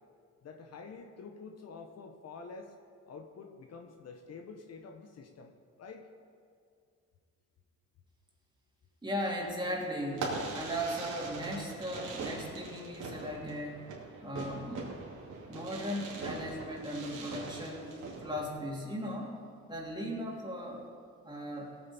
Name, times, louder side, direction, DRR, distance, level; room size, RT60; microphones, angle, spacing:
voice 1, 0.4-2.7 3.1-6.1, left 4 dB, 55° left, 5 dB, 1.0 m, -48 dB
voice 2, 9.0-13.9 14.2-14.9 15.5-17.9 18.2-19.4 19.7-20.8 21.2-21.7, equal, 15° right, -2 dB, 2.8 m, -37 dB
Fireworks, 10.1-18.5, right 3 dB, 80° right, 2.7 m, -41 dB
17.5 x 8.5 x 4.3 m, 2.2 s
cardioid pair, 90°, 30 cm